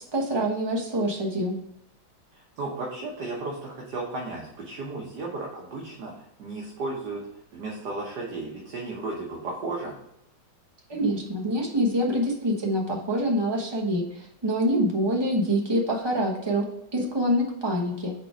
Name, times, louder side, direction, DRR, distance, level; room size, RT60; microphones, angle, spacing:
voice 1, 0.1-1.6 10.9-16.7 16.9-18.1, equal, 20° right, 0 dB, 0.9 m, -25 dB
voice 2, 2.3-7.2 7.5-9.9, right 2 dB, 65° right, -2 dB, 1.7 m, -34 dB
5.5 x 4.3 x 4.9 m, 0.81 s
omnidirectional pair, 2.1 m